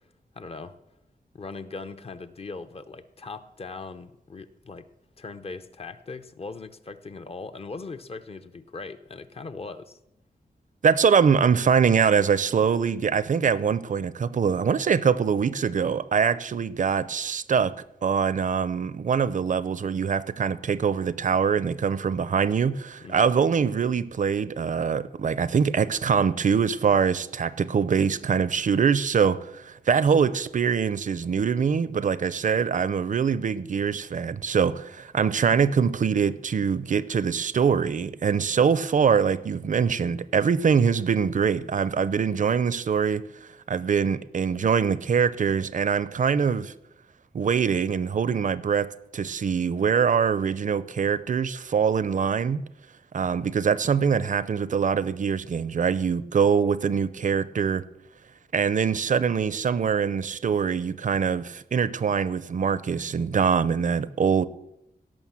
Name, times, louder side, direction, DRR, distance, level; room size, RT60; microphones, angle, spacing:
voice 1, 0.3-0.8 1.3-4.9 5.2-10.0 23.0-23.3, left 4 dB, 40° left, 0.7 m, -39 dB
voice 2, 10.8-46.7 47.3-52.6 53.1-57.9 58.5-64.5, right 6 dB, 55° right, 0.6 m, -23 dB
17.5 x 6.3 x 7.4 m
wide cardioid pair, 170°, 16 cm